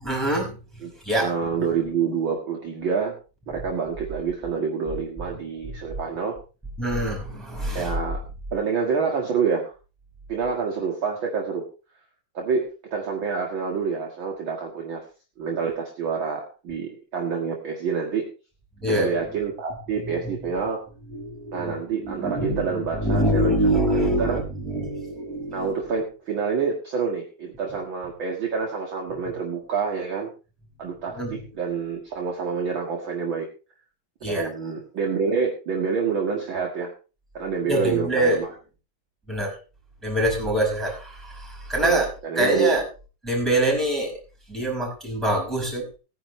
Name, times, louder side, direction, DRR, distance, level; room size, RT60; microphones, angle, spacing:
voice 1, 0.0-0.6 1.0-1.3 6.8-7.9 18.8-19.1 21.1-21.7 22.0-25.7 31.1-31.4 34.2-34.5 37.6-38.4 39.3-39.5 40.0-42.1 42.3-42.8 43.2-44.1 44.5-45.9, right 1 dB, ahead, 0 dB, 4.7 m, -24 dB
voice 2, 1.2-3.1 3.5-6.3 7.7-8.2 8.5-9.7 10.3-11.7 12.3-15.0 15.4-18.2 18.9-20.8 21.5-24.4 25.5-30.3 30.8-33.5 34.3-36.9 37.3-38.5 41.8-42.8, right 5 dB, 45° right, 0 dB, 1.6 m, -27 dB
18.5 x 10.0 x 3.1 m, 0.33 s
omnidirectional pair, 4.4 m